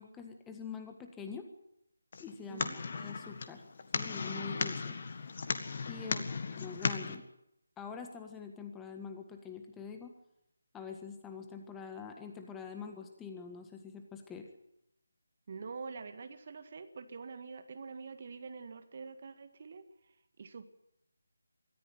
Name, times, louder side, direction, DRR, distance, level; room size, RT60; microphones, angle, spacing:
voice 1, 0.0-1.4 2.2-3.6 3.9-5.0 5.9-7.2 7.8-10.1 10.7-14.5, left 6 dB, 10° left, 5 dB, 1.6 m, -45 dB
sound 1, 2.1-7.2, left 4 dB, 40° left, 1.8 m, -37 dB
voice 2, 2.5-2.8 6.0-6.4 15.5-20.7, right 4 dB, 40° right, 8 dB, 1.8 m, -46 dB
23.5 x 14.5 x 9.2 m, 0.83 s
figure-of-eight pair, 155°, 0 cm